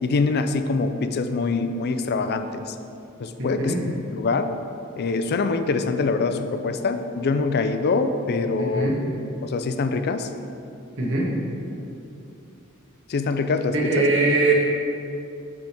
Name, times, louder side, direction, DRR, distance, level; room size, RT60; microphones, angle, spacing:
voice 1, 0.0-2.8 3.2-3.7 4.1-4.5 5.0-8.9 9.4-10.3 13.1-14.1, left 4 dB, 50° left, 8 dB, 0.4 m, -24 dB
voice 2, 3.4-3.8 8.6-9.0 11.0-11.3 13.7-14.5, right 3 dB, 65° right, -4 dB, 1.5 m, -22 dB
10.5 x 3.6 x 4.5 m, 2.7 s
head